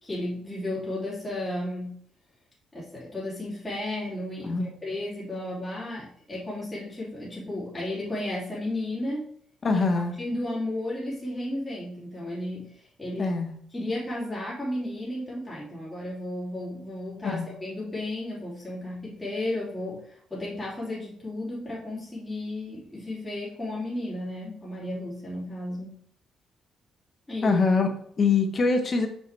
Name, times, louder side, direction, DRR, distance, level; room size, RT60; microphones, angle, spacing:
voice 1, 0.0-1.9 2.7-9.3 9.7-13.4 13.7-20.0 20.3-25.9 27.3-27.6, left 1 dB, 15° left, -8 dB, 2.8 m, -33 dB
voice 2, 9.6-10.1 13.2-13.5 17.2-17.5 27.4-29.1, left 4 dB, 40° left, 6 dB, 1.1 m, -24 dB
5.6 x 5.6 x 3.3 m, 0.63 s
cardioid pair, 90°, 0 cm